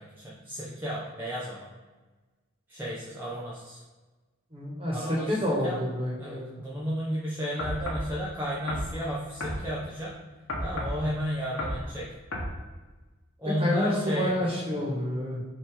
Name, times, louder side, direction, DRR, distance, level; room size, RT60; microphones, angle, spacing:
voice 1, 0.0-1.7 2.7-3.8 4.9-5.8 6.2-10.1 10.6-12.1 13.4-14.3 14.7-14.9, equal, 10° right, -8 dB, 0.8 m, -33 dB
voice 2, 4.5-6.6 10.7-11.1 13.6-15.5, left 1 dB, 25° right, -3 dB, 1.6 m, -29 dB
sound 1, 7.6-8.1 8.7-8.9 9.4-9.6 10.5-11.0 11.6-11.8 12.3-12.5, left 1 dB, 80° left, 1.2 m, -32 dB
5.8 x 3.1 x 5.2 m, 1.2 s
head